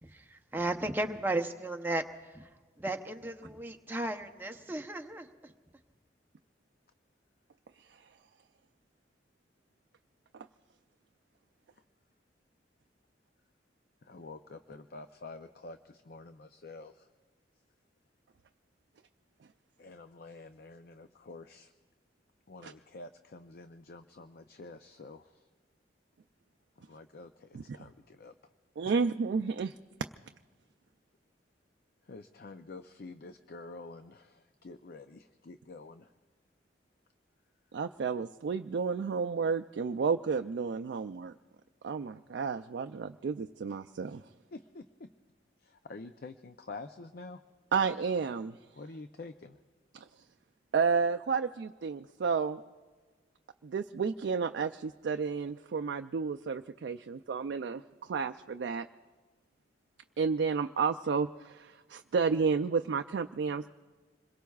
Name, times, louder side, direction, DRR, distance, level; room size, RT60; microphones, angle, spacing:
voice 1, 0.0-2.5 2.8-5.5, right 2 dB, 10° right, 5 dB, 0.7 m, -35 dB
voice 2, 14.0-17.1 19.8-21.7 22.5-25.5 26.8-28.3 28.8-28.9 32.0-36.1 44.5-45.1 45.6-47.4 48.8-49.6, left 3 dB, 55° left, 9 dB, 0.5 m, -48 dB
voice 3, 28.8-29.7 37.7-41.3 41.8-44.2 47.7-48.6 49.9-50.1 50.7-52.6 53.6-58.9 60.2-63.7, right 5 dB, 65° right, 6 dB, 0.4 m, -31 dB
26.5 x 22.0 x 2.4 m, 1.4 s
head